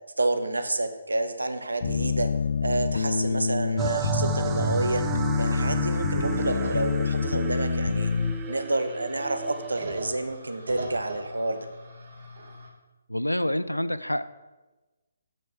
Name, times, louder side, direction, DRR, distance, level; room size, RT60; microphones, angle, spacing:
voice 1, 0.2-2.3 2.6-5.0 5.4-8.1 8.5-11.7, right 2 dB, 70° right, 9 dB, 0.8 m, -29 dB
sound 1, 1.8-8.3, left 5 dB, 50° left, 0.7 m, -27 dB
sound 2, 3.8-10.0, right 8 dB, 15° right, 0.4 m, -33 dB
sound 3, 6.2-12.7, right 1 dB, 50° right, 2.3 m, -41 dB
voice 2, 13.1-14.2, left 1 dB, 85° left, 14 dB, 0.4 m, -27 dB
7.4 x 5.5 x 5.9 m, 1.1 s
figure-of-eight pair, 140°, 0 cm